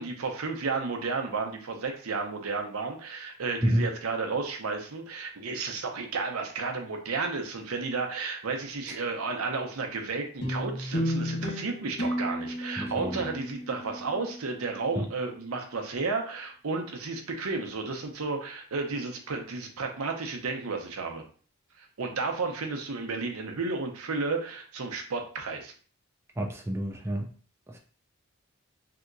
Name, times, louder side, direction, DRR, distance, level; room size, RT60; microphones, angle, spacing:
voice 1, 0.0-21.2 21.8-25.7, right 4 dB, 85° right, 3 dB, 0.7 m, -32 dB
sound 1, 10.4-15.0, equal, 55° left, 1.0 m, -33 dB
voice 2, 12.8-13.2 15.0-15.1 26.4-27.3 27.7-27.8, equal, 10° right, 1 dB, 0.4 m, -29 dB
3.4 x 2.8 x 2.5 m, 0.41 s
head